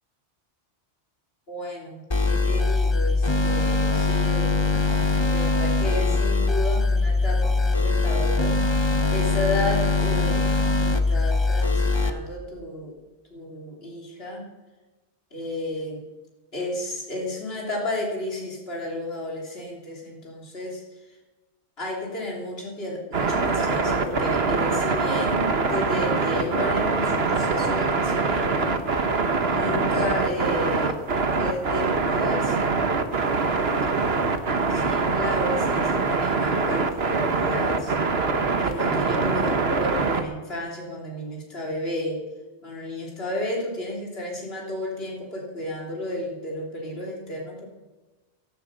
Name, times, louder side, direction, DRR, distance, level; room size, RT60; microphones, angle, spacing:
voice 1, 1.5-4.9 5.3-10.5 10.7-13.0 13.3-14.5 15.3-16.0 16.5-21.2 21.8-28.7 29.5-32.8 34.7-37.9 38.6-42.2 42.6-47.6, left 1 dB, 60° left, -2 dB, 3.5 m, -32 dB
sound 1, 2.1-12.1, left 3 dB, 25° left, 1.1 m, -22 dB
sound 2, 23.1-40.2, right 4 dB, 60° right, 1.6 m, -24 dB
16.0 x 13.0 x 6.7 m, 1.2 s
omnidirectional pair, 1.2 m